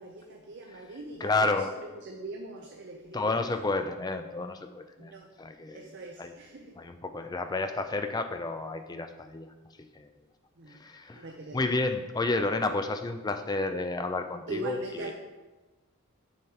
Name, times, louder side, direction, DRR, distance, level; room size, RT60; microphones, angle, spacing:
voice 1, 0.0-1.6 2.0-3.4 5.0-5.3 5.7-6.8 10.6-10.8 11.1-11.6 14.5-15.1, right 2 dB, 50° right, 1 dB, 0.5 m, -41 dB
voice 2, 1.2-1.7 3.1-5.1 5.4-5.9 6.2-6.3 6.8-9.5 9.9-10.1 10.7-11.3 11.5-15.1, left 3 dB, 15° left, 7 dB, 0.3 m, -31 dB
6.6 x 6.5 x 2.8 m, 1.2 s
head